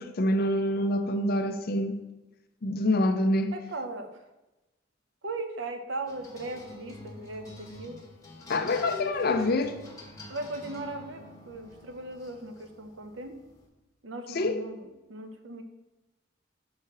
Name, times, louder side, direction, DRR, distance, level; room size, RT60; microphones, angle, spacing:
voice 1, 0.0-2.0 2.6-3.5 8.5-9.7 14.3-14.6, left 1 dB, 55° left, 0.5 m, -26 dB
voice 2, 3.5-4.1 5.2-8.0 8.8-9.5 10.3-13.4 14.0-15.6, right 2 dB, 85° right, 0.8 m, -38 dB
sound 1, 6.1-13.7, left 1 dB, 20° left, 1.2 m, -48 dB
5.7 x 4.3 x 5.9 m
head